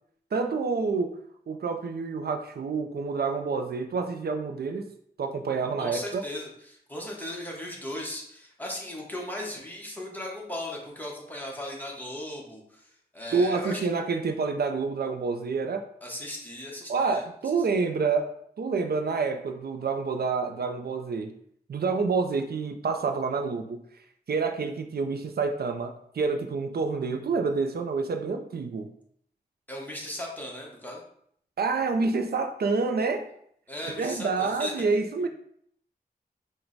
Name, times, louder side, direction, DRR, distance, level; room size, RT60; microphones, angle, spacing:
voice 1, 0.3-1.2 1.5-4.9 5.2-6.2 13.3-15.8 16.9-18.3 18.6-21.3 21.7-23.8 24.3-28.9 31.6-33.3 33.8-35.3, right 4 dB, 70° right, 6 dB, 0.4 m, -28 dB
voice 2, 5.8-13.8 16.0-17.2 29.7-31.0 33.7-34.7, left 1 dB, 10° left, -2 dB, 1.0 m, -37 dB
4.5 x 2.1 x 3.9 m, 0.67 s
wide cardioid pair, 90°, 17 cm